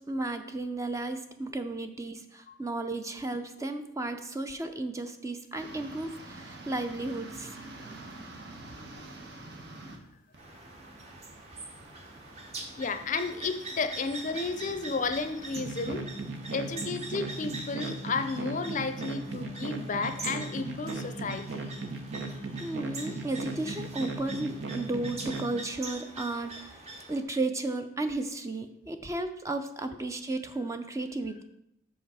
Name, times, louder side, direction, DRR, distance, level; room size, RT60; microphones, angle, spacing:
voice 1, 0.1-7.5 22.6-26.8 27.1-31.4, right 2 dB, 15° right, 8 dB, 0.4 m, -34 dB
sound 1, 5.5-10.0 10.3-16.0, right 2 dB, 60° right, 1.1 m, -48 dB
sound 2, 10.4-27.2, right 2 dB, 35° right, 1.0 m, -44 dB
voice 2, 12.8-16.0 16.5-21.7, left 4 dB, 40° left, 9 dB, 0.5 m, -32 dB
sound 3, 15.6-25.5, right 3 dB, 80° right, 0.8 m, -37 dB
6.6 x 5.5 x 4.8 m, 0.82 s
head